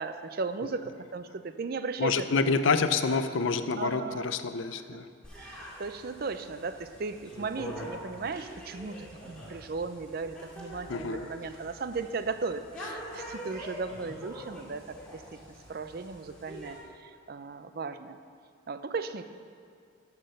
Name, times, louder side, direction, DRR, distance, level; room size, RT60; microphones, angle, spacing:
voice 1, 0.0-2.7 3.8-4.3 4.7-5.0 5.3-15.2 15.7-18.2 18.7-19.2, right 4 dB, 50° right, 11 dB, 0.4 m, -36 dB
voice 2, 2.0-5.1 10.9-11.3, left 4 dB, 70° left, 10 dB, 0.5 m, -27 dB
sound 1, 5.2-16.8, equal, 5° left, 2.3 m, -44 dB
11.5 x 6.0 x 6.6 m, 2.2 s
head